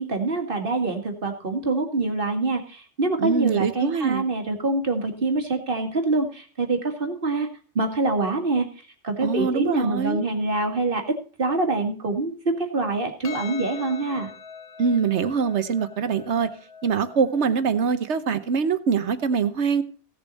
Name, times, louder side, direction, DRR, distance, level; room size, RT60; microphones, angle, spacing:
voice 1, 0.0-7.5 7.8-14.3, right 3 dB, 50° right, 4 dB, 2.1 m, -25 dB
voice 2, 3.2-4.2 9.2-10.2 14.8-16.5 16.8-19.8, right 6 dB, 75° right, 12 dB, 1.3 m, -23 dB
Percussion, 13.2-17.9, left 7 dB, 60° left, 1.2 m, -43 dB
16.0 x 7.0 x 4.1 m, 0.40 s
omnidirectional pair, 1.2 m